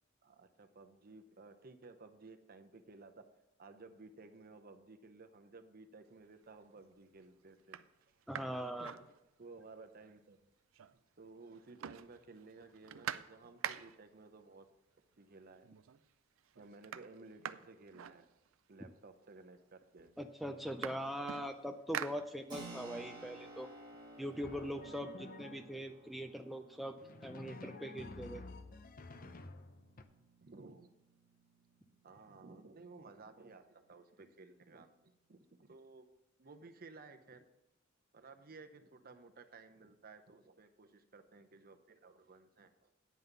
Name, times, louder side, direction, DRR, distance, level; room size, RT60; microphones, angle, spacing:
voice 1, 0.2-3.2 3.6-7.8 8.1-8.2 8.6-9.1 9.4-10.4 10.9-14.7 15.2-15.7 16.6-18.3 18.7-20.1 22.5-23.1 29.2-29.3 30.4-30.9 32.0-34.9 35.3-36.0 36.4-37.5 38.1-42.9, right 3 dB, 45° right, 8 dB, 0.8 m, -56 dB
sound 1, 6.2-6.7 7.2-7.3 7.6-9.7 10.0-10.1 10.3-11.2 11.5-14.2 15.1-15.2 15.6-16.1 16.4-18.8 19.6-19.7 20.0-22.8 23.2-24.9, right 9 dB, 80° right, 0.4 m, -47 dB
voice 2, 8.3-9.0 20.2-23.7 24.2-27.0 27.2-28.4, equal, ahead, 4 dB, 0.4 m, -42 dB
Keyboard (musical), 22.5-32.9, right 2 dB, 20° right, 1.5 m, -56 dB
Drum, 24.4-25.9 27.0-30.0, left 2 dB, 45° left, 0.6 m, -51 dB
9.4 x 5.6 x 6.8 m, 0.95 s
head